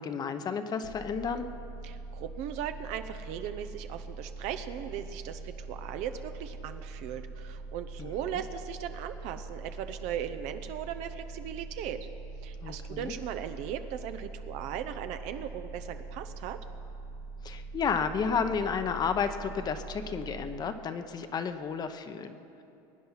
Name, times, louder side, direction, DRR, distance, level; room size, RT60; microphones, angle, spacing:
voice 1, 0.0-1.5 8.0-8.1 12.6-13.1 17.4-22.4, left 6 dB, 30° left, 8 dB, 0.8 m, -32 dB
sound 1, 0.8-20.6, right 3 dB, 80° left, 3.5 m, -43 dB
voice 2, 1.8-12.1 12.4-16.6, right 9 dB, 60° right, 9 dB, 0.7 m, -38 dB
22.0 x 9.4 x 5.7 m, 2.8 s
supercardioid pair, 125°, 13 cm